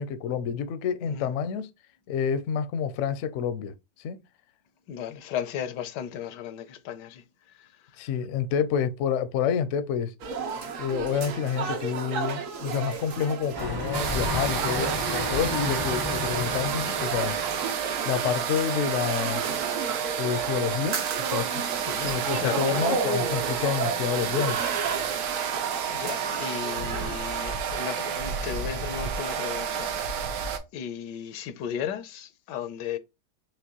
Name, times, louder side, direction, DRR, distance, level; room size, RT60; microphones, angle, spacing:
voice 1, 0.0-1.7 2.1-3.7 4.0-4.2 8.0-10.1 10.8-17.4 18.1-19.4 20.2-21.7 22.0-24.6, left 8 dB, 70° left, 0.7 m, -28 dB
voice 2, 4.9-7.2 7.6-7.7 21.9-22.1 22.4-22.9 25.4-25.6 25.9-30.3 30.7-33.0, left 9 dB, 90° left, 1.2 m, -35 dB
sound 1, 10.2-27.2, right 5 dB, 60° right, 1.0 m, -33 dB
sound 2, 13.5-17.8, left 1 dB, 25° right, 0.5 m, -32 dB
sound 3, 13.9-30.6, right 8 dB, 80° right, 1.3 m, -30 dB
5.1 x 3.1 x 2.8 m
omnidirectional pair, 1.8 m